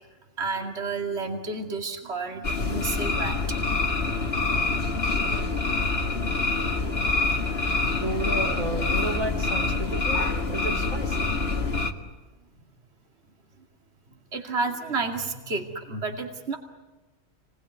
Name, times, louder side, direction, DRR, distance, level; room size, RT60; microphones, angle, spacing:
voice 1, 0.4-3.6 6.1-6.3 7.1-7.8 14.3-16.6, right 3 dB, 50° right, 3 dB, 2.7 m, -31 dB
sound 1, 2.4-11.9, left 3 dB, 50° left, 2.2 m, -26 dB
voice 2, 7.8-10.2 10.5-11.3, right 1 dB, 90° right, 2 dB, 3.6 m, -32 dB
29.5 x 21.0 x 9.4 m, 1.1 s
omnidirectional pair, 1.4 m